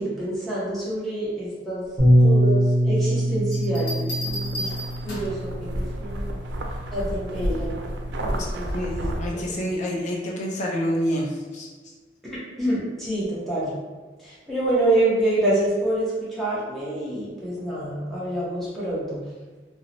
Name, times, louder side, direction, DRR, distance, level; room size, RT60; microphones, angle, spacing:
voice 1, 0.0-4.7 5.0-6.4 6.9-7.9 8.2-8.9 9.3-9.4 12.2-13.7 14.2-19.2, right 1 dB, ahead, -9 dB, 0.8 m, -27 dB
Bass guitar, 2.0-8.2, equal, 25° right, 1.1 m, -23 dB
sound 1, 3.5-5.5 7.1-7.4, equal, 75° left, 0.8 m, -34 dB
sound 2, 4.2-9.3, right 1 dB, 85° right, 0.4 m, -31 dB
voice 2, 8.7-11.7, equal, 45° left, -3 dB, 0.4 m, -27 dB
2.6 x 2.0 x 2.9 m, 1.4 s
head